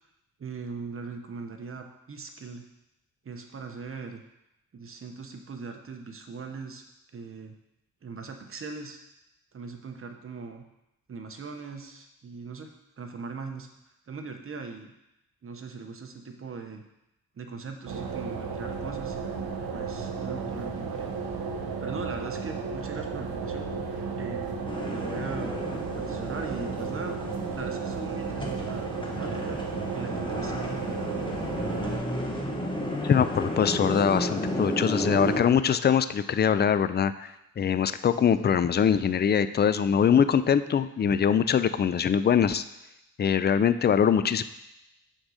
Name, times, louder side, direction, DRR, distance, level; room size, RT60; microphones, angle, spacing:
voice 1, 0.4-2.6 3.2-4.2 4.7-6.8 7.1-7.5 8.0-9.0 9.5-10.6 11.1-13.7 14.1-14.9 15.4-16.8 17.4-19.2 19.7-21.1 21.8-24.6 24.9-25.6 26.0-27.2 27.5-29.6 29.9-30.8, right 4 dB, 35° right, 5 dB, 1.0 m, -40 dB
sound 1, 17.9-32.0, right 5 dB, 80° right, 1.1 m, -34 dB
sound 2, 24.7-35.4, equal, 15° left, 1.2 m, -33 dB
voice 2, 33.0-37.3 37.6-42.6 43.2-44.4, left 8 dB, 30° left, 13 dB, 0.4 m, -23 dB
6.3 x 3.9 x 6.3 m, 0.88 s
cardioid pair, 80°, 36 cm